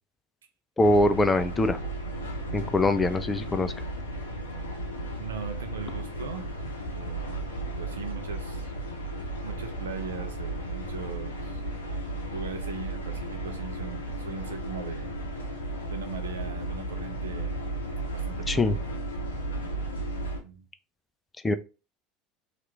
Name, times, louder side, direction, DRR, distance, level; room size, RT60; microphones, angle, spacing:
sound 1, 0.8-20.4, right 1 dB, 85° left, 0.6 m, -34 dB
voice 1, 0.8-1.8 2.5-3.7 18.5-18.8 21.4-21.5, left 2 dB, 20° left, 0.4 m, -23 dB
voice 2, 5.2-6.6 6.9-7.4 7.8-8.7 9.1-9.2 9.4-11.6 12.3-15.1 15.8-17.6 18.1-18.6 20.4-20.7, right 5 dB, 75° right, 0.5 m, -39 dB
2.8 x 2.5 x 3.2 m
figure-of-eight pair, 70°, 0 cm